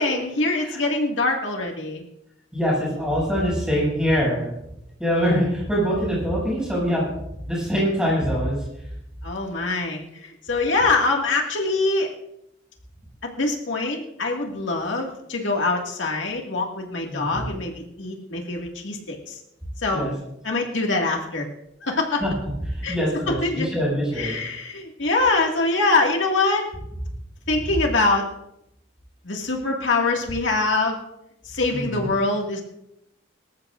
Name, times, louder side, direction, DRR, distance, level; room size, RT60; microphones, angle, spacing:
voice 1, 0.0-2.0 9.2-12.1 13.2-19.4 19.8-20.1 20.4-21.5 21.8-22.2 22.8-23.0 23.3-23.7 24.2-26.7 27.5-28.3 29.2-31.0 31.4-32.6, left 3 dB, 80° left, 0 dB, 2.0 m, -24 dB
voice 2, 2.5-4.5 5.0-7.2 7.5-8.6 17.1-17.5 19.9-20.1 22.2-22.3 22.7-24.4 31.7-32.1, equal, 5° right, -6 dB, 7.0 m, -24 dB
25.5 x 14.0 x 2.5 m, 0.81 s
head